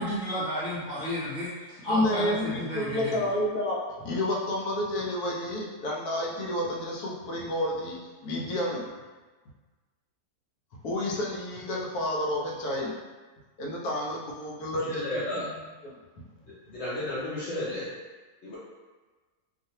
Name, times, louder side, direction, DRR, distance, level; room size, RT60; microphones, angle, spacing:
voice 1, 0.0-3.1, equal, 50° right, -11 dB, 0.6 m, -31 dB
voice 2, 1.9-8.9 10.8-13.0 13.6-15.2 15.8-16.0, left 1 dB, 80° left, -2 dB, 1.1 m, -30 dB
voice 3, 14.9-15.5 16.7-17.9 18.4-18.6, left 1 dB, 60° left, -8 dB, 0.7 m, -32 dB
2.4 x 2.4 x 2.7 m, 1.3 s
omnidirectional pair, 1.6 m